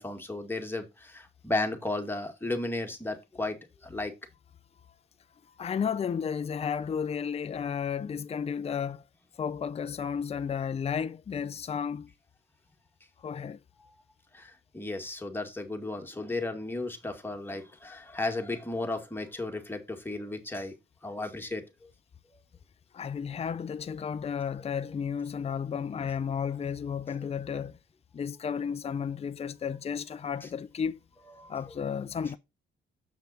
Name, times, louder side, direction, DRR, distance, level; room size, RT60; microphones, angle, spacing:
voice 1, 0.0-4.1 13.8-13.9 14.3-20.7 21.0-21.9 31.4-31.6, left 2 dB, 10° left, 2.0 m, -34 dB
voice 2, 5.6-9.0 9.4-12.1 13.2-13.6 22.9-27.8 28.1-31.0 31.5-32.4, left 7 dB, 30° left, 0.6 m, -33 dB
7.2 x 6.0 x 4.1 m
cardioid pair, 90°, 20 cm